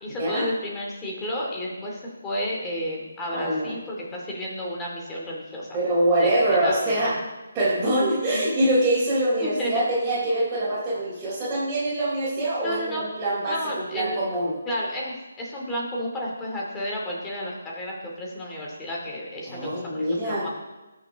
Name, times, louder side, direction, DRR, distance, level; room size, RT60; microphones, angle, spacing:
voice 1, 0.0-5.8 6.2-7.2 8.3-8.5 9.4-9.8 12.6-13.1 13.4-14.2 14.6-20.5, equal, 10° left, -3 dB, 2.5 m, -32 dB
voice 2, 3.3-3.7 5.7-7.2 7.5-14.5 19.5-20.5, right 1 dB, 15° right, -12 dB, 4.0 m, -24 dB
20.0 x 6.7 x 3.7 m, 1.1 s
figure-of-eight pair, 155°, 0 cm